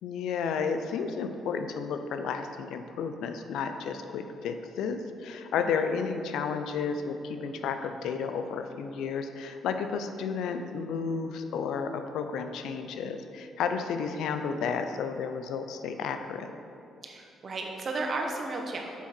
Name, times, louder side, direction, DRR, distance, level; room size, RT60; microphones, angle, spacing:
voice 1, 0.0-16.5, left 6 dB, 85° left, 8 dB, 0.5 m, -32 dB
voice 2, 17.0-18.9, right 3 dB, 45° right, 2 dB, 1.0 m, -34 dB
7.1 x 5.8 x 4.4 m, 2.6 s
cardioid pair, 105°, 0 cm